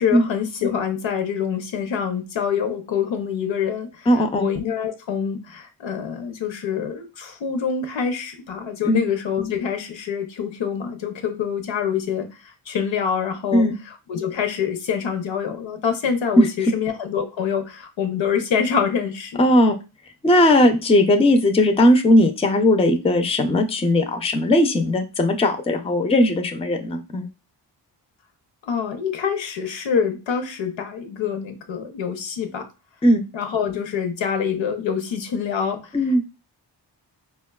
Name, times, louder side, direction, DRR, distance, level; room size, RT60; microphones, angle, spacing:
voice 1, 0.0-12.3 12.7-19.5 20.7-20.8 28.6-32.7 33.3-35.8, left 7 dB, 85° left, 6 dB, 0.7 m, -26 dB
voice 2, 4.1-4.5 8.8-9.0 13.5-13.8 16.4-16.5 19.4-19.7 20.2-27.3 33.0-33.2 35.9-36.2, left 1 dB, 15° left, 5 dB, 0.4 m, -18 dB
4.4 x 2.2 x 2.2 m, 0.30 s
wide cardioid pair, 75°, 44 cm